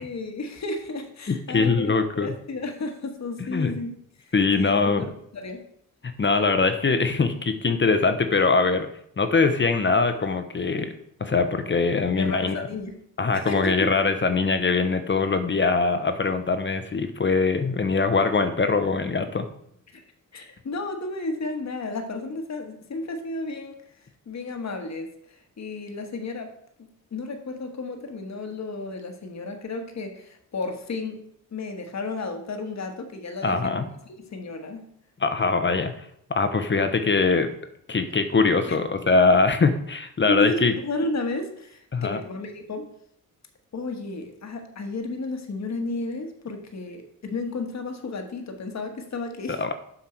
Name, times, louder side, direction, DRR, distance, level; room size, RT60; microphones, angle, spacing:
voice 1, 0.0-3.9 4.2-5.1 5.3-5.6 12.1-12.9 13.3-13.9 19.9-20.0 20.3-23.8 24.3-25.1 25.6-26.5 26.8-31.2 31.5-34.9 38.6-38.8 40.3-42.9 43.7-49.6, left 2 dB, 50° left, 5 dB, 1.4 m, -32 dB
voice 2, 1.3-2.3 3.5-3.7 4.3-5.0 6.2-8.9 9.2-10.9 11.2-12.7 13.2-19.5 33.4-33.9 35.2-35.9 36.3-37.5 37.9-40.7 41.9-42.2 49.5-49.7, left 4 dB, 35° left, 8 dB, 0.8 m, -22 dB
7.7 x 5.7 x 4.4 m, 0.69 s
cardioid pair, 80°, 35 cm